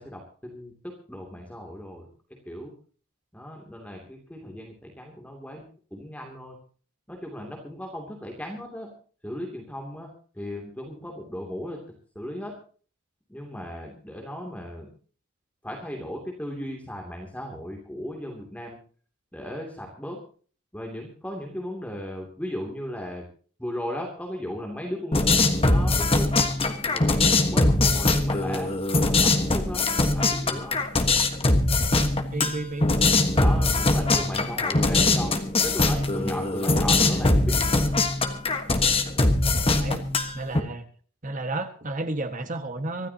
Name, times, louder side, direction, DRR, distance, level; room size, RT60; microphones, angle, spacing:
voice 1, 0.0-2.1 2.5-2.7 3.3-5.6 5.9-6.6 7.1-8.9 9.2-10.1 10.3-11.8 12.1-12.5 13.3-14.9 15.6-18.8 19.3-20.2 20.7-23.2 23.6-25.2 25.7-26.3 26.7-27.2 27.5-28.7 29.0-29.8 30.1-30.8 33.3-35.3 35.6-37.6, equal, 5° left, 0 dB, 2.8 m, -36 dB
sound 1, 25.1-40.6, left 2 dB, 25° left, 1.4 m, -22 dB
voice 2, 32.3-32.9 37.1-37.3 39.7-40.8 41.2-43.1, right 2 dB, 35° right, 7 dB, 1.6 m, -32 dB
25.0 x 13.5 x 2.9 m, 0.43 s
head